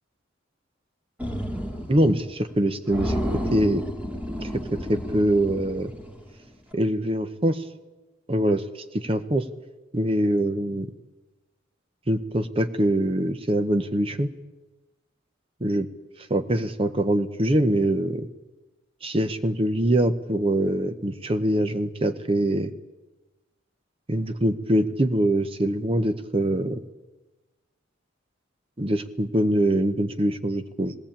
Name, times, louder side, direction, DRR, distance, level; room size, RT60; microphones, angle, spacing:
sound 1, 1.2-2.2 2.5-2.6 2.9-6.3, equal, 5° right, 2.2 m, -31 dB
voice 1, 1.9-3.2 3.5-3.8 4.9-5.9 6.7-7.6 8.3-9.5 9.9-10.9 12.1-14.3 15.6-15.9 16.2-18.3 19.0-22.7 24.1-26.8 28.8-30.9, right 1 dB, 30° right, 10 dB, 0.9 m, -23 dB
19.5 x 17.5 x 8.8 m, 1.1 s
head